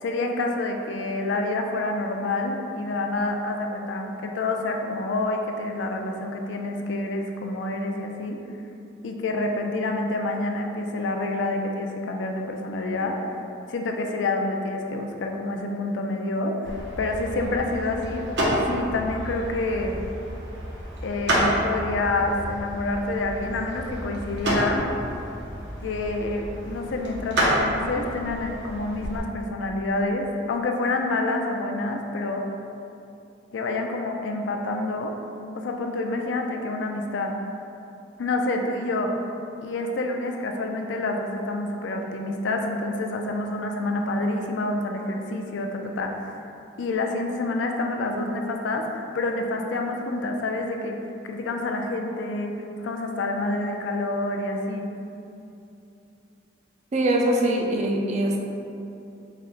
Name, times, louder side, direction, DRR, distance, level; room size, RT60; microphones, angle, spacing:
voice 1, 0.0-8.4 9.0-13.2 13.7-20.0 21.0-24.9 25.8-32.5 33.5-35.1 35.5-37.3 38.2-39.1 39.6-46.4 46.8-51.0 51.2-54.9, left 2 dB, 80° left, 3 dB, 0.4 m, -28 dB
sound 1, 16.6-29.2, equal, 65° right, 0.7 m, -29 dB
voice 2, 56.9-58.4, right 1 dB, 40° right, 1 dB, 0.3 m, -22 dB
4.1 x 2.1 x 3.8 m, 2.7 s
head